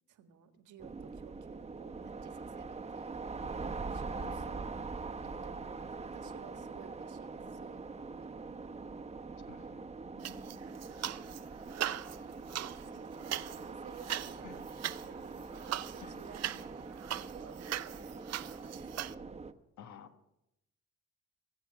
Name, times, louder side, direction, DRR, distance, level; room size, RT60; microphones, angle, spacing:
voice 1, 0.1-3.3 3.9-8.3 10.2-10.8 12.2-12.5 12.8-14.8 15.0-17.2 17.5-18.9, right 7 dB, 80° right, 7 dB, 1.7 m, -56 dB
sound 1, 0.8-19.5, right 4 dB, 20° right, 1.0 m, -43 dB
voice 2, 4.1-4.5 9.5-9.9 14.4-14.6 16.0-16.1 19.8-20.1, left 7 dB, 75° left, 8 dB, 1.4 m, -51 dB
sound 2, 10.2-11.4 11.7-19.1, right 12 dB, 60° right, 0.6 m, -40 dB
23.5 x 8.2 x 5.9 m, 0.84 s
cardioid pair, 90°, 30 cm